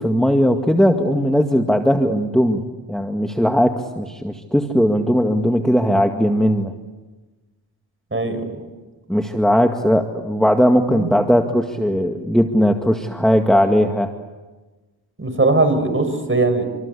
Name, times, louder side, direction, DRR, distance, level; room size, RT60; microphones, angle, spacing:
voice 1, 0.0-2.6 2.9-6.7 9.1-14.1, equal, ahead, 4 dB, 2.0 m, -18 dB
voice 2, 8.1-8.5 10.9-11.1 15.2-16.6, right 2 dB, 25° right, 8 dB, 6.5 m, -19 dB
27.0 x 26.5 x 8.4 m, 1.2 s
cardioid pair, 60°, 47 cm